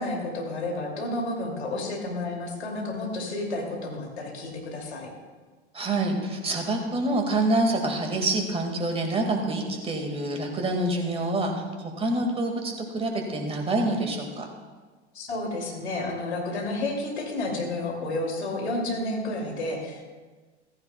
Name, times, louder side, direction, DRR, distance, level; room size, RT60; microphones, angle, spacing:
voice 1, 0.0-5.1 15.1-20.0, left 2 dB, 70° left, 0 dB, 2.7 m, -31 dB
voice 2, 5.7-14.5, right 2 dB, 15° right, 3 dB, 1.9 m, -27 dB
15.0 x 14.5 x 2.3 m, 1.4 s
figure-of-eight pair, 90°, 34 cm